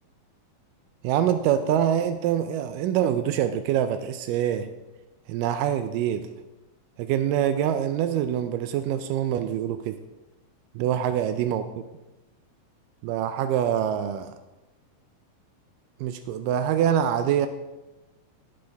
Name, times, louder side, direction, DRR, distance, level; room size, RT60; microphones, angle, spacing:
voice 1, 1.0-4.7 5.3-6.3 7.0-10.0 10.8-11.7 13.0-14.4 16.0-17.5, right 10 dB, 90° right, 9 dB, 1.9 m, -25 dB
17.0 x 6.8 x 3.5 m, 1.0 s
omnidirectional pair, 4.4 m